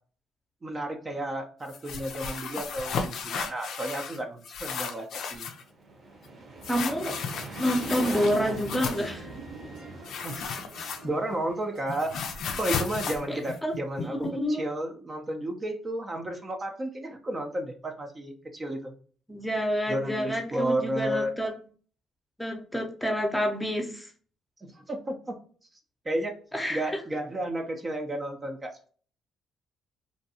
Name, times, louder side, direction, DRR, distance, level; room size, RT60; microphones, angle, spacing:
voice 1, 0.6-5.5 10.2-12.1 12.6-14.2 14.5-18.9 19.9-21.3 24.6-25.4 26.0-26.3 26.7-28.9, right 1 dB, 35° right, 2 dB, 0.5 m, -32 dB
sound 1, 1.7-4.2 4.4-5.6 6.6-9.1 10.0-11.4 11.6-14.3, left 6 dB, 70° left, 0.4 m, -34 dB
sound 2, 5.6-12.3, right 2 dB, 50° right, 0.9 m, -41 dB
voice 2, 6.7-7.2 7.6-9.3 13.3-13.7 14.1-14.6 19.3-21.5 22.4-24.1 26.5-27.0, equal, 10° left, 2 dB, 0.7 m, -28 dB
sound 3, 7.8-13.6, right 2 dB, 80° right, 0.8 m, -50 dB
2.6 x 2.2 x 2.7 m, 0.43 s
supercardioid pair, 65°, 0 cm